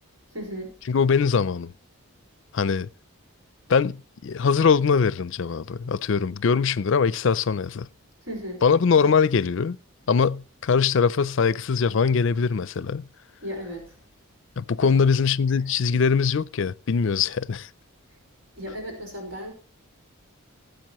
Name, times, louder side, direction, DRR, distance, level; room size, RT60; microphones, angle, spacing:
voice 1, 0.3-0.7 8.2-8.6 13.4-14.0 14.8-15.0 15.5-15.6 15.9-16.0 18.1-18.2 18.5-19.5, equal, 70° right, 5.0 m, -35 dB
voice 2, 0.9-1.7 2.5-2.9 3.7-7.9 8.6-9.8 10.1-13.1 14.6-17.7, left 5 dB, 60° left, 0.4 m, -22 dB
19.5 x 8.0 x 3.0 m
head